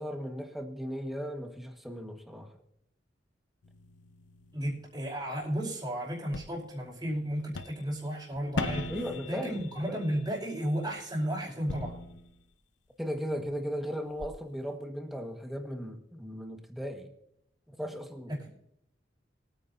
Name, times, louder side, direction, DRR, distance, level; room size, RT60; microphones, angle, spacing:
voice 1, 0.0-2.5 8.9-9.5 9.9-10.0 13.0-17.1 17.7-18.3, equal, ahead, 1.5 m, -37 dB
sound 1, 3.6-5.0 6.3-6.5 7.4-7.9 8.3-10.3 11.5-12.5 13.5-13.6 14.2-14.3, left 2 dB, 75° left, 0.8 m, -39 dB
voice 2, 4.5-8.9 9.3-12.0 18.3-18.5, equal, 20° right, 4.5 m, -33 dB
24.5 x 9.3 x 2.7 m
head